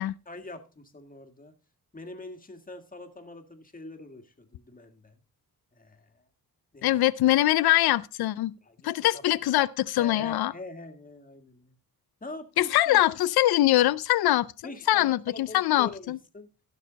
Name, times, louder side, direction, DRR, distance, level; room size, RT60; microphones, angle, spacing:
voice 1, 0.3-1.6 1.9-5.2 5.7-6.2 6.7-6.9 8.6-9.2 9.9-11.8 12.2-13.0 14.6-16.5, left 2 dB, 25° left, 1.8 m, -44 dB
voice 2, 6.8-8.6 8.8-10.5 12.6-14.5 14.9-16.2, left 15 dB, 90° left, 0.5 m, -23 dB
16.0 x 6.6 x 3.9 m
cardioid pair, 100°, 37 cm